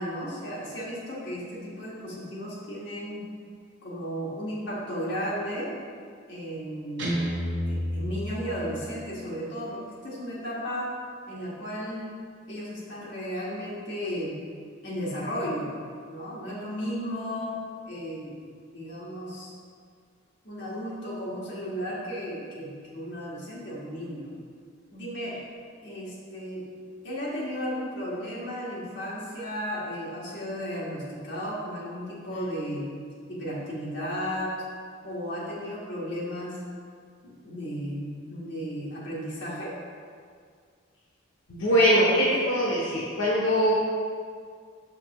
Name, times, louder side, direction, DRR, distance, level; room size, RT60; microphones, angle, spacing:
voice 1, 0.0-3.3 3.8-5.7 6.3-7.2 7.7-10.9 11.3-12.1 12.5-14.4 14.8-15.7 16.1-17.6 17.9-18.4 18.7-19.5 20.4-24.3 24.9-25.4 25.8-26.6 27.0-32.9 33.3-34.5 35.0-36.6 37.2-39.7, equal, 60° left, -6 dB, 1.5 m, -34 dB
Guitar, 7.0-9.0, equal, 65° right, 1.0 m, -30 dB
voice 2, 41.5-43.7, equal, 85° left, -5 dB, 0.9 m, -22 dB
5.8 x 5.6 x 3.0 m, 2.1 s
head